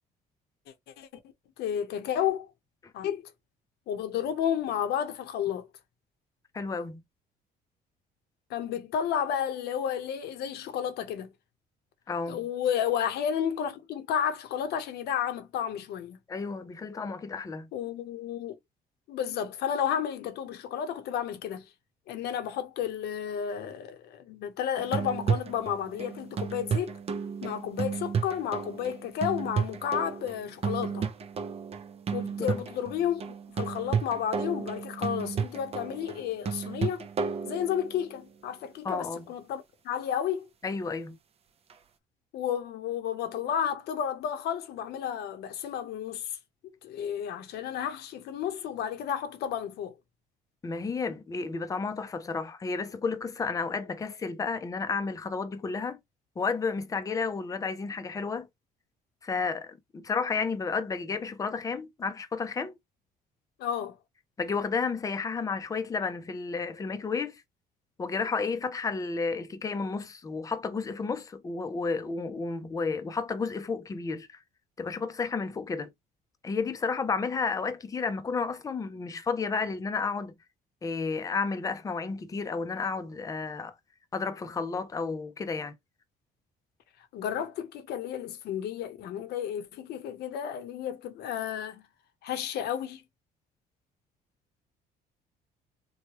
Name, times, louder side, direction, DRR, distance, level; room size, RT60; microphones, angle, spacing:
voice 1, 1.6-2.5 2.9-3.2 3.9-5.7 8.5-11.3 12.3-16.2 17.7-18.6 19.1-21.7 22.1-27.0 27.4-31.1 32.1-37.1 37.4-40.5 42.3-46.4 46.8-49.9 63.6-64.0 87.1-91.9 92.2-93.0, left 9 dB, 75° left, 0.8 m, -32 dB
voice 2, 6.5-7.0 12.1-12.4 16.3-17.7 32.5-32.6 38.8-39.2 40.6-41.2 50.6-56.0 56.4-58.5 59.2-62.8 64.4-67.4 68.0-74.3 74.8-75.9 76.4-80.3 80.8-83.7 84.1-85.7, left 4 dB, 20° left, 0.5 m, -32 dB
sound 1, 24.8-38.2 41.7-41.8, right 6 dB, 35° right, 0.5 m, -33 dB
3.1 x 2.2 x 2.9 m
cardioid pair, 110°, 17 cm